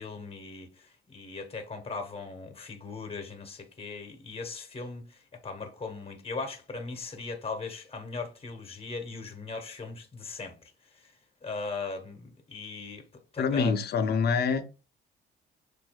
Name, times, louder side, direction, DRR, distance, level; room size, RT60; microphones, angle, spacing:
voice 1, 0.0-10.6 10.9-11.2 11.4-13.0 13.3-13.8, left 3 dB, 30° left, 1.0 m, -39 dB
voice 2, 13.4-14.6, left 5 dB, 55° left, 0.6 m, -26 dB
6.1 x 2.7 x 2.3 m
cardioid pair, 90°, 20 cm